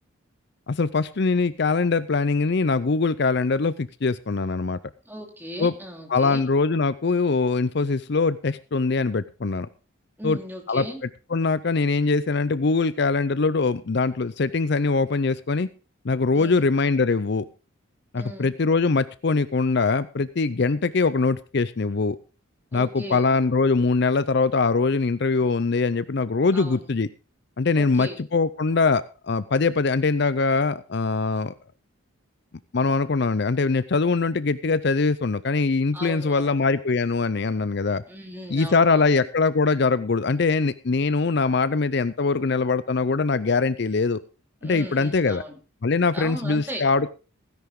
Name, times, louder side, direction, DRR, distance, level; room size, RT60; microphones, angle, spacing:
voice 1, 0.7-4.8 5.6-5.7 6.1-9.7 10.2-10.4 10.7-10.8 11.3-15.7 16.0-17.5 18.1-22.2 22.7-27.1 27.6-31.5 32.7-38.0 38.5-44.2 44.6-45.4 45.8-47.1, left 4 dB, 55° left, 15 dB, 0.5 m, -22 dB
voice 2, 5.1-6.5 10.2-11.0 16.3-16.6 18.1-18.6 22.7-23.3 26.5-26.9 27.7-28.2 35.9-36.6 38.1-39.3 44.6-45.5 46.1-46.8, equal, 10° right, 2 dB, 2.7 m, -37 dB
16.0 x 10.5 x 3.8 m, 0.33 s
head